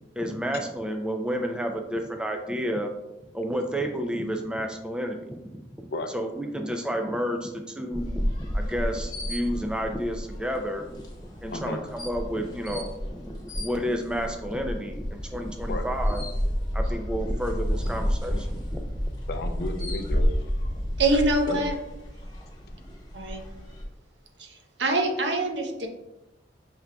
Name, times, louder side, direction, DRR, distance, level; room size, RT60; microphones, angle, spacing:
voice 1, 0.2-2.9 3.3-5.4 5.8-5.9 6.1-10.9 11.2-16.2 16.7-18.8, equal, 5° right, 4 dB, 0.4 m, -31 dB
sound 1, 7.9-23.8, equal, 20° left, 1.0 m, -31 dB
voice 2, 11.5-11.8 15.7-15.9 19.3-20.5 21.5-21.6, left 2 dB, 60° left, 6 dB, 0.4 m, -33 dB
voice 3, 21.0-21.7 23.1-23.4 24.4-24.5 24.8-25.9, right 2 dB, 75° right, 4 dB, 0.7 m, -24 dB
5.8 x 3.6 x 2.2 m, 0.95 s
head